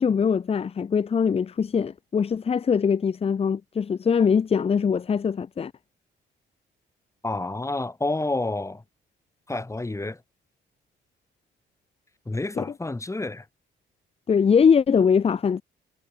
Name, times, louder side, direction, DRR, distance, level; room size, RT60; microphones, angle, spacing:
voice 1, 0.0-5.7 12.6-12.7 14.3-15.6, left 6 dB, 30° left, 0.6 m, -22 dB
voice 2, 7.2-8.8 9.5-10.2 12.3-13.5, left 2 dB, 15° left, 2.8 m, -29 dB
cardioid pair, 90°, 20 cm